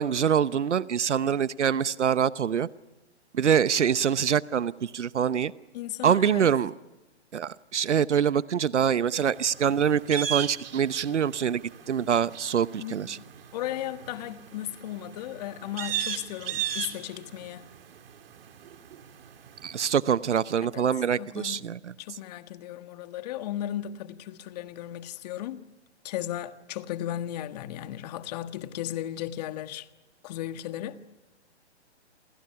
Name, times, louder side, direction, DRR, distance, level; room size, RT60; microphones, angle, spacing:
voice 1, 0.0-2.7 3.3-5.5 6.0-6.7 7.3-13.2 19.6-21.9, right 8 dB, 80° right, 0.8 m, -25 dB
voice 2, 5.7-6.5 12.8-17.7 20.7-20.8 21.2-21.6 22.0-25.6 26.0-29.9 30.2-31.0, left 12 dB, 35° left, 1.5 m, -36 dB
sound 1, 9.2-20.0, right 9 dB, 55° right, 2.8 m, -38 dB
28.5 x 28.5 x 5.8 m
hypercardioid pair, 140°, 34 cm